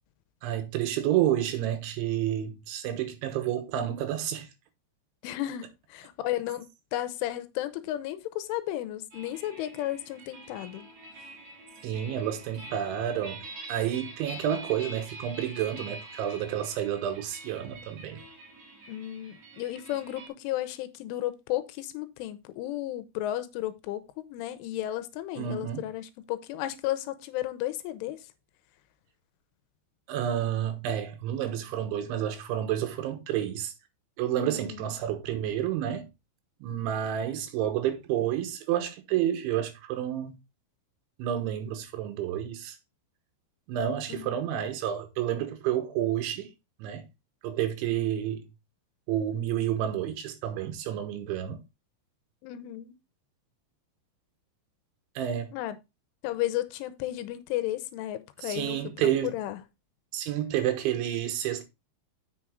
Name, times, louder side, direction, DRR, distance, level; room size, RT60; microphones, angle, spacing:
voice 1, 0.4-4.5 11.8-13.4 13.7-18.2 25.4-25.8 30.1-33.7 34.2-36.1 36.6-40.4 41.2-42.8 43.7-46.5 46.8-47.0 47.4-48.5 49.1-51.6 55.2-55.5 58.4-59.3 60.1-61.6, right 11 dB, 80° right, 3.4 m, -30 dB
voice 2, 5.2-10.9 18.9-28.3 34.4-34.9 44.1-44.4 52.4-53.0 55.5-55.8 56.2-59.6, left 14 dB, 85° left, 3.2 m, -34 dB
sound 1, 9.1-20.3, right 2 dB, 45° right, 2.7 m, -46 dB
7.7 x 6.2 x 3.6 m
omnidirectional pair, 5.6 m